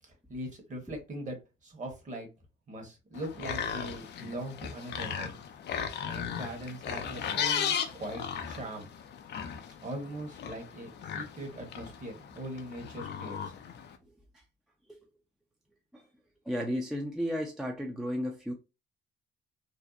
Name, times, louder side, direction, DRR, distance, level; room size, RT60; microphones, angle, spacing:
voice 1, 0.1-2.3 2.7-5.3 6.0-8.9 9.8-13.5, right 1 dB, 40° right, 1.1 m, -41 dB
sound 1, 3.1-14.0, left 8 dB, 60° left, 0.5 m, -36 dB
voice 2, 16.5-18.5, equal, ahead, 0.4 m, -33 dB
2.6 x 2.0 x 2.3 m
cardioid pair, 90°, 20 cm